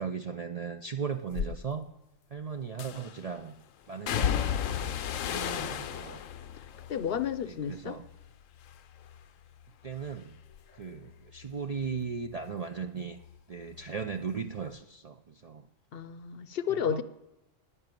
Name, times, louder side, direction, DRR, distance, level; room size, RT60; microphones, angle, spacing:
voice 1, 0.0-1.9 2.3-3.6 3.9-6.2 7.5-8.1 9.8-10.4 10.7-13.2 13.5-15.7 16.7-17.0, right 6 dB, 50° right, 6 dB, 0.4 m, -37 dB
sound 1, 1.3-1.6 2.8-3.3 4.1-8.3 8.6-9.2 9.6-12.9 13.2-14.3 14.6-14.7, left 9 dB, 80° left, 1.0 m, -35 dB
voice 2, 6.9-8.0 15.9-17.0, left 8 dB, 55° left, 14 dB, 0.8 m, -32 dB
11.0 x 9.7 x 9.1 m, 0.97 s
omnidirectional pair, 1.3 m